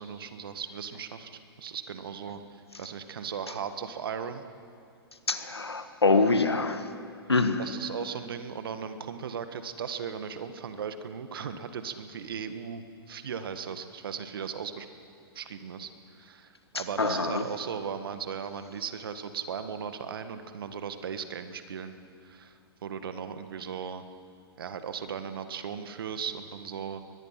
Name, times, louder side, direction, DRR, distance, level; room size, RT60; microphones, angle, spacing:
voice 1, 0.0-4.4 7.6-14.9 15.3-15.9 16.2-22.0 22.2-22.5 22.8-24.0 24.6-27.0, right 7 dB, 65° right, 9 dB, 1.6 m, -37 dB
voice 2, 5.3-6.9 7.3-7.7 16.7-17.4, left 3 dB, 85° left, 10 dB, 1.5 m, -25 dB
22.0 x 21.0 x 5.9 m, 2.4 s
figure-of-eight pair, 110°, 13 cm